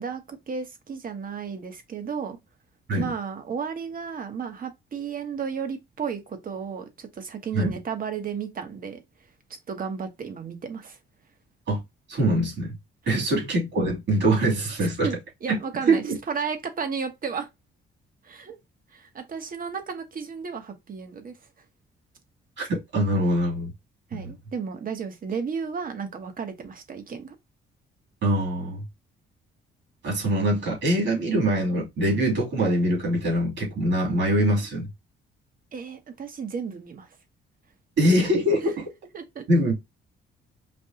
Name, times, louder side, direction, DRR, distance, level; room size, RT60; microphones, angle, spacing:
voice 1, 0.0-2.4 3.0-9.0 9.7-11.0 13.0-13.2 14.8-17.5 18.2-18.6 18.9-21.3 24.1-27.3 35.7-37.1 39.1-39.4, right 6 dB, 45° right, 1.2 m, -33 dB
voice 2, 12.1-12.8 13.1-15.1 15.5-15.6 15.9-16.2 22.6-23.7 28.2-28.8 30.0-34.9 38.0-38.8 39.5-39.7, right 1 dB, 70° right, 3.0 m, -23 dB
5.3 x 2.6 x 2.9 m
cardioid pair, 90°, 20 cm